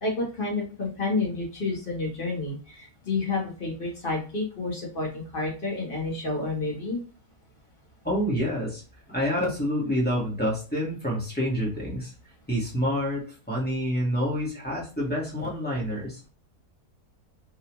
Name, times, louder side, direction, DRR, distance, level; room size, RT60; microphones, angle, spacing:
voice 1, 0.0-7.0, left 3 dB, 40° left, -2 dB, 1.1 m, -30 dB
voice 2, 8.0-8.8 9.1-12.1 12.5-16.3, equal, 5° left, -6 dB, 1.1 m, -27 dB
3.6 x 2.4 x 2.9 m, 0.36 s
omnidirectional pair, 1.6 m